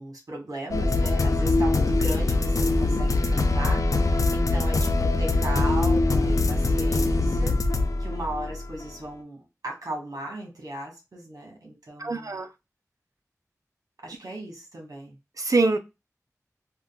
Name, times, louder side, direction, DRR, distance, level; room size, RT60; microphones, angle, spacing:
voice 1, 0.0-7.6 8.0-12.4 14.0-15.2, right 1 dB, 85° right, 1.3 m, -37 dB
sound 1, 0.7-8.8, left 2 dB, 65° left, 0.5 m, -23 dB
voice 2, 12.0-12.5 15.4-15.8, right 3 dB, 65° right, 0.6 m, -23 dB
4.9 x 2.2 x 2.2 m
wide cardioid pair, 45°, 6 cm